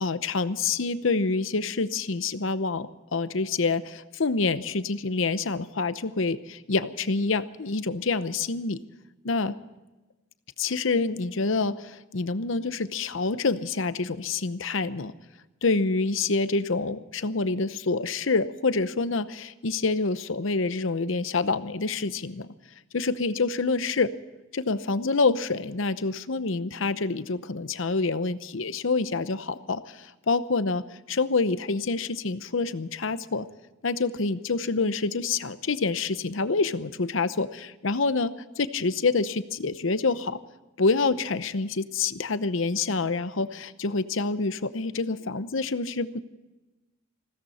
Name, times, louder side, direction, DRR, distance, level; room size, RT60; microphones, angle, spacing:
voice 1, 0.0-2.9 3.1-8.8 9.2-9.6 10.6-15.1 15.6-22.5 22.9-24.1 24.5-33.5 33.8-40.4 40.8-46.2, left 3 dB, 65° left, 13 dB, 0.8 m, -27 dB
20.5 x 16.0 x 4.3 m, 1.1 s
head